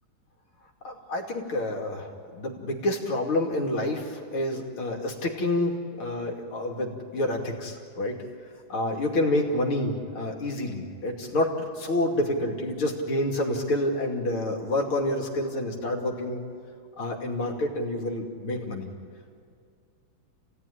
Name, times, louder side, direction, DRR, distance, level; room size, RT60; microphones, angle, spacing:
voice 1, 0.8-8.2 8.7-16.4 17.0-18.9, left 1 dB, 85° left, 0 dB, 3.4 m, -28 dB
29.0 x 17.0 x 10.0 m, 2.2 s
omnidirectional pair, 2.2 m